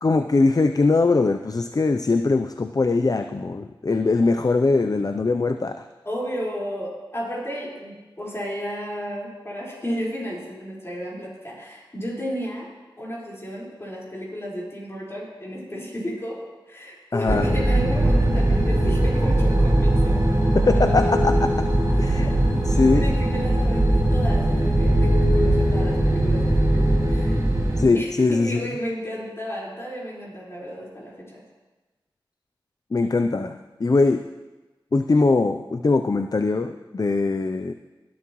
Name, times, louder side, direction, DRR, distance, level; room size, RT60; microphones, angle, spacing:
voice 1, 0.0-5.8 17.1-17.5 20.5-21.5 22.0-22.3 22.6-23.1 27.8-28.6 32.9-34.2 34.9-37.7, left 3 dB, 45° left, 7 dB, 0.6 m, -21 dB
voice 2, 6.0-12.7 13.0-20.2 22.0-22.3 22.8-27.4 27.9-31.4, equal, 30° left, -5 dB, 4.6 m, -33 dB
sound 1, 17.3-27.8, right 1 dB, 40° right, 3.8 m, -20 dB
18.0 x 11.5 x 3.1 m, 1.2 s
cardioid pair, 40°, 9 cm